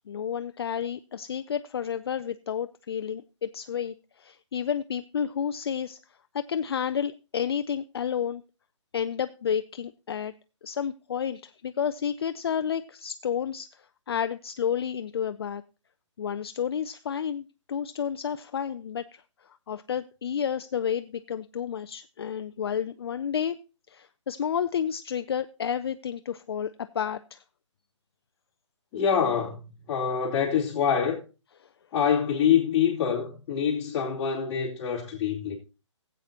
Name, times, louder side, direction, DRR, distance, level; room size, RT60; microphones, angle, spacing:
voice 1, 0.1-6.0 6.3-8.4 8.9-10.3 10.6-13.7 14.1-15.6 16.2-19.2 19.7-23.6 23.9-27.4 31.6-31.7, left 8 dB, 55° left, 0.4 m, -31 dB
voice 2, 28.9-29.6 29.9-31.2 31.9-35.6, left 7 dB, 20° left, 2.9 m, -25 dB
16.0 x 8.2 x 2.8 m
hypercardioid pair, 160°, 16 cm